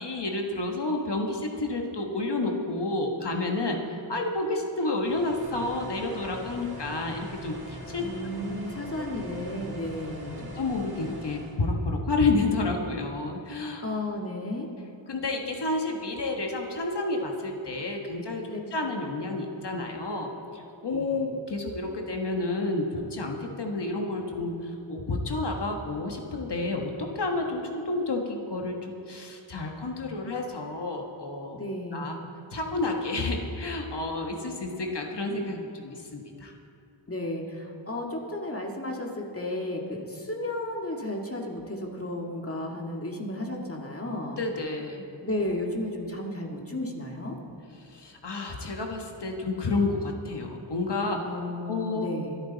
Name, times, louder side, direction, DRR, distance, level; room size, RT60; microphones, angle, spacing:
voice 1, 0.0-3.8 4.1-8.0 10.5-13.8 15.1-31.6 31.9-32.2 32.5-36.5 44.4-45.1 47.8-51.2 51.6-52.1, left 2 dB, 55° left, 2 dB, 1.5 m, -30 dB
sound 1, 5.0-11.6, equal, 50° right, 2.3 m, -42 dB
voice 2, 8.0-10.5 13.8-14.7 18.5-18.6 20.9-21.2 31.5-32.3 37.1-44.4 45.2-47.4 51.2-52.4, left 1 dB, 30° left, 0 dB, 1.9 m, -33 dB
25.0 x 9.2 x 4.0 m, 2.6 s
wide cardioid pair, 85°, 48 cm